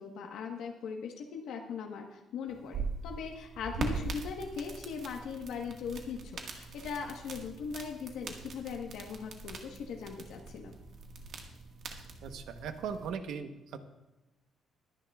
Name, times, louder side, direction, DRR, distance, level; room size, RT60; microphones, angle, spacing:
voice 1, 0.0-10.8, left 6 dB, 80° left, 1 dB, 1.3 m, -40 dB
sound 1, 2.5-13.1, right 4 dB, 55° right, 1.6 m, -42 dB
voice 2, 12.2-13.8, right 6 dB, 75° right, 8 dB, 1.0 m, -39 dB
21.5 x 10.0 x 2.4 m, 1.0 s
cardioid pair, 165°, 0 cm